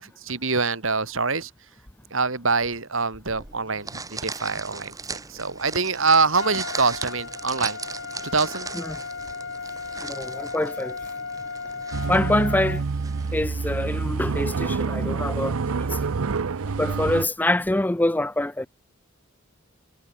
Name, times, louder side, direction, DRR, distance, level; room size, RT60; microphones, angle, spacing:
voice 1, 0.0-1.5 2.1-7.8 8.3-8.7, right 4 dB, 65° right, 2.6 m, -25 dB
sound 1, 3.3-14.7, right 4 dB, 15° right, 1.7 m, -39 dB
Trumpet, 6.3-12.8, left 4 dB, 60° left, 1.9 m, -35 dB
voice 2, 10.0-11.0 12.1-12.8 13.3-16.2 16.8-18.7, left 1 dB, 10° left, 0.5 m, -25 dB
sound 2, 11.9-17.3, right 4 dB, 90° right, 0.6 m, -27 dB
head